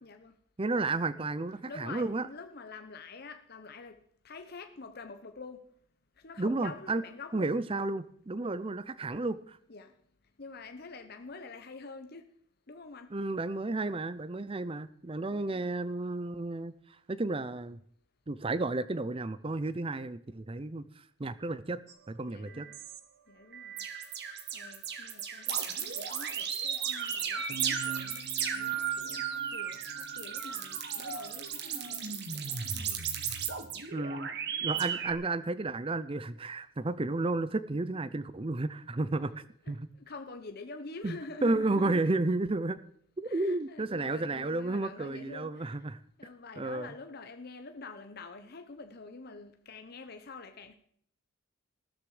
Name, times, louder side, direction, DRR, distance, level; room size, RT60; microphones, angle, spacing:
voice 1, 0.0-0.4 1.5-5.7 6.2-7.6 9.7-9.9 10.4-12.3 12.7-13.2 15.3-15.6 22.2-22.8 23.3-23.9 24.5-32.0 32.3-33.0 39.6-42.2 43.2-45.9 46.2-50.7, left 3 dB, 50° left, 1.0 m, -47 dB
voice 2, 0.6-2.3 6.4-7.0 7.3-9.6 13.1-17.8 18.3-21.8 22.1-22.7 33.9-34.3 34.6-39.8 41.0-42.8 43.2-46.0 46.6-46.9, right 2 dB, 25° right, 0.5 m, -32 dB
sound 1, 21.9-22.0 22.5-23.0 23.5-35.1, right 7 dB, 55° right, 1.7 m, -35 dB
15.5 x 13.0 x 5.0 m
head